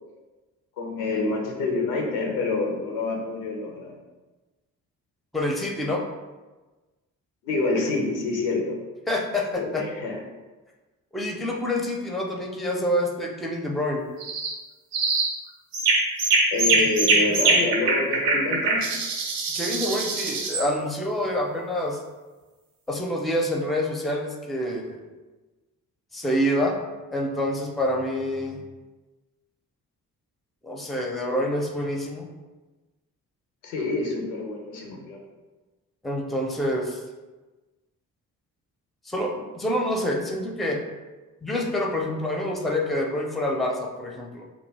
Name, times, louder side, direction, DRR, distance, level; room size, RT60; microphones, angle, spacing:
voice 1, 0.8-4.0 7.4-8.8 9.6-10.2 16.5-18.8 33.6-35.2, left 3 dB, 90° left, 1 dB, 0.6 m, -27 dB
voice 2, 5.3-6.0 9.1-9.9 11.1-14.1 16.7-16.8 17.1-17.4 19.5-22.0 22.9-25.0 26.1-26.8 27.1-28.6 30.6-32.3 36.0-37.0 39.1-40.8 41.4-44.5, left 1 dB, ahead, 1 dB, 0.4 m, -27 dB
sound 1, 14.2-14.6 14.9-15.3 15.7-20.7, right 3 dB, 85° right, 0.5 m, -23 dB
2.3 x 2.2 x 3.2 m, 1.2 s
hypercardioid pair, 45°, 40 cm